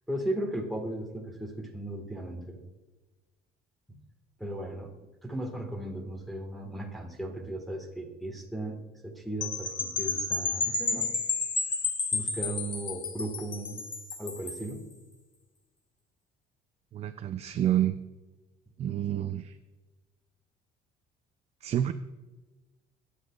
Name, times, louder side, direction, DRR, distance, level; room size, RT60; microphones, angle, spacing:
voice 1, 0.1-2.6 3.9-4.0 4.4-4.9 5.2-8.8 9.0-11.1 12.1-13.8 14.2-14.8, right 1 dB, ahead, 0 dB, 1.7 m, -36 dB
sound 1, 9.4-14.7, left 4 dB, 30° left, 1.4 m, -31 dB
voice 2, 16.9-18.0 18.8-19.6 21.6-21.9, right 11 dB, 40° right, 9 dB, 0.4 m, -28 dB
18.0 x 8.3 x 2.4 m, 1.2 s
cardioid pair, 125°, 16 cm